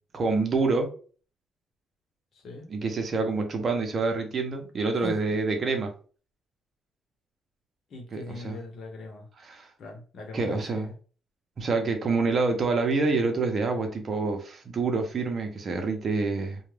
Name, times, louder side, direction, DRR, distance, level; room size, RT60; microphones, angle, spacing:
voice 1, 0.1-0.9 2.7-5.9 8.1-8.6 9.4-9.7 10.3-10.9 11.6-16.6, right 3 dB, 45° right, 0.7 m, -27 dB
voice 2, 2.3-2.7 5.0-5.2 5.6-5.7 7.9-9.3 9.8-10.9, left 2 dB, 60° left, 0.9 m, -40 dB
2.3 x 2.2 x 3.2 m
cardioid pair, 90°, 0 cm